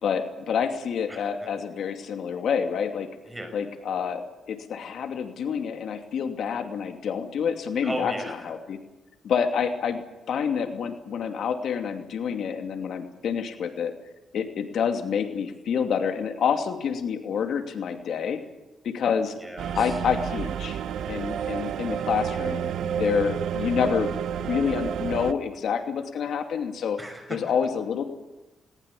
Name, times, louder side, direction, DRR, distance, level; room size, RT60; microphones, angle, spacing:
voice 1, 0.0-3.1 3.5-8.1 8.5-8.8 9.2-10.0 10.3-13.9 14.3-18.4 18.8-19.3 19.7-20.8 21.1-24.1 24.4-27.0 27.3-28.0, left 7 dB, 70° left, 6 dB, 2.6 m, -28 dB
voice 2, 1.1-1.5 3.3-3.5 7.8-8.5 19.4-20.0 21.9-22.1 27.0-27.4, equal, 10° right, 6 dB, 5.9 m, -36 dB
sound 1, 19.6-25.3, right 8 dB, 80° right, 1.2 m, -30 dB
21.0 x 20.0 x 8.5 m, 1.0 s
cardioid pair, 130°, 0 cm